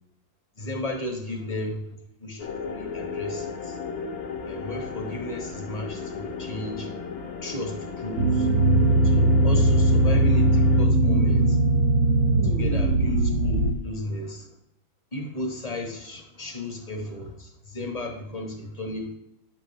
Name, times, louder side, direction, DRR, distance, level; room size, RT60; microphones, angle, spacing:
voice 1, 0.6-1.8 2.2-3.8 4.4-6.9 7.4-8.5 9.0-11.6 12.4-14.5 15.1-19.1, left 1 dB, 25° left, 2 dB, 1.1 m, -34 dB
sound 1, 2.4-10.9, left 5 dB, 55° left, 1.4 m, -35 dB
sound 2, 8.2-13.7, right 1 dB, 50° right, 1.1 m, -20 dB
9.5 x 7.5 x 3.3 m, 0.78 s
omnidirectional pair, 2.1 m